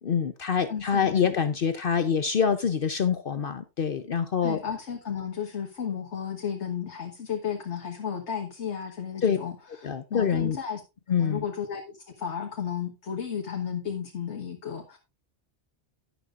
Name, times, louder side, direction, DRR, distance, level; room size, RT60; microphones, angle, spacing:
voice 1, 0.0-4.6 9.2-9.4 9.8-10.6 11.1-11.4, left 7 dB, 55° left, 11 dB, 0.9 m, -25 dB
voice 2, 0.7-1.4 4.4-10.8 11.1-15.0, left 7 dB, 90° left, 3 dB, 1.7 m, -33 dB
11.5 x 11.0 x 2.5 m, 0.26 s
omnidirectional pair, 1.1 m